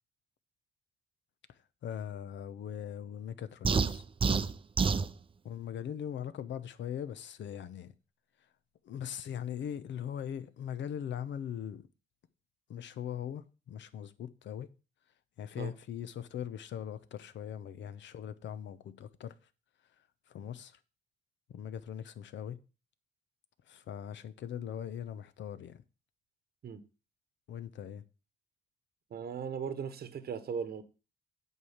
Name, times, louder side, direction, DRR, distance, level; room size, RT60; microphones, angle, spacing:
voice 1, 1.8-4.0 5.4-7.9 8.8-11.9 12.7-14.7 15.4-19.3 20.3-20.8 21.5-22.6 23.7-25.8 27.5-28.0, left 9 dB, 65° left, 0.8 m, -40 dB
sound 1, 3.6-5.1, right 5 dB, 25° right, 0.5 m, -28 dB
voice 2, 29.1-30.8, right 7 dB, 50° right, 1.1 m, -38 dB
8.2 x 4.9 x 7.2 m
cardioid pair, 90°, 20 cm